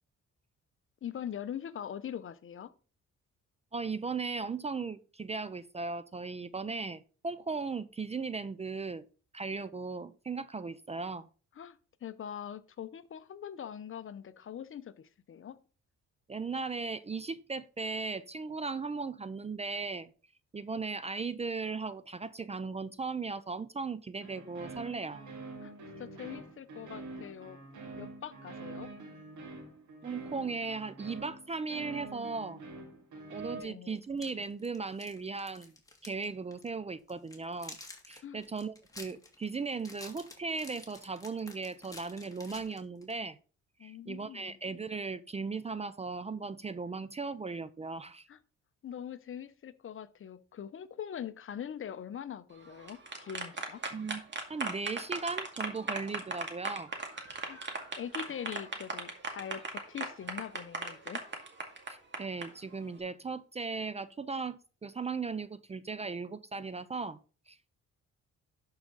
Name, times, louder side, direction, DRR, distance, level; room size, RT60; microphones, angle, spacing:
voice 1, 1.0-2.7 11.6-15.6 25.6-25.7 26.0-27.6 28.0-28.9 33.5-34.0 38.2-38.4 43.8-44.6 48.3-48.4 48.8-53.8 57.4-57.6 58.0-61.2, left 9 dB, 45° left, 14 dB, 0.7 m, -42 dB
voice 2, 3.7-9.0 9.3-11.3 16.3-20.1 20.5-25.2 30.0-32.6 33.3-35.7 36.0-37.8 38.1-43.4 43.8-48.3 53.9-54.2 54.5-56.9 61.9-67.2 67.5-67.7, right 4 dB, 20° right, 15 dB, 0.4 m, -37 dB
sound 1, 24.2-33.6, right 3 dB, 75° right, 2.7 m, -46 dB
sound 2, 34.0-36.2 36.5-36.7 37.1-43.2, left 2 dB, 10° left, 2.3 m, -50 dB
sound 3, 52.7-62.4, right 3 dB, 40° right, 2.2 m, -37 dB
11.5 x 4.8 x 4.0 m, 0.37 s
cardioid pair, 90°, 30 cm